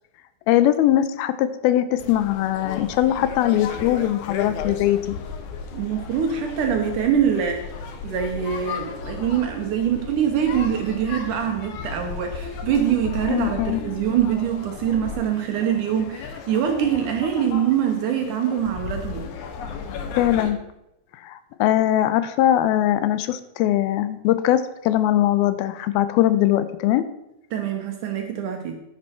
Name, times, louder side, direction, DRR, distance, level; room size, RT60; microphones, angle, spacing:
voice 1, 0.5-5.0 13.3-13.8 20.2-20.6 21.2-27.0, left 12 dB, 85° left, 12 dB, 2.5 m, -21 dB
sound 1, 2.0-20.5, left 6 dB, 70° left, 2.1 m, -35 dB
voice 2, 5.7-7.7 8.0-19.3 27.5-28.8, right 9 dB, 70° right, 4 dB, 2.1 m, -24 dB
10.5 x 9.9 x 4.4 m, 0.87 s
omnidirectional pair, 4.3 m